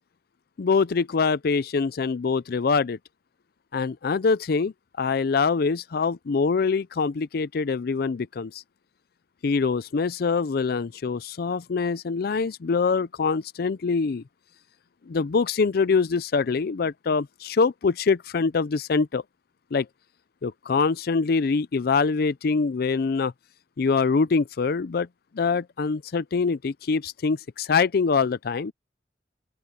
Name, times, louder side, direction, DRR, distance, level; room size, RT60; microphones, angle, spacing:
voice 1, 0.6-3.0 3.7-8.6 9.4-14.2 15.1-19.2 19.7-19.9 20.4-23.3 23.8-25.1 25.3-28.7, left 4 dB, 60° left, 0.5 m, -24 dB
head